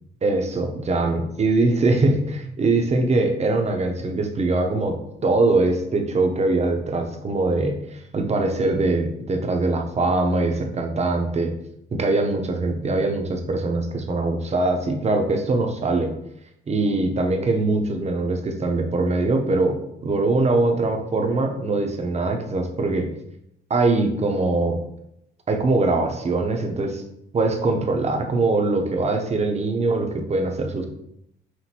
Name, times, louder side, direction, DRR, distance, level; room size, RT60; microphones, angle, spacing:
voice 1, 0.2-11.5 11.9-16.1 16.7-23.1 23.7-24.8 25.5-27.0 27.3-30.9, right 2 dB, 35° right, 3 dB, 0.7 m, -22 dB
5.9 x 2.6 x 2.8 m, 0.78 s
cardioid pair, 90°, 20 cm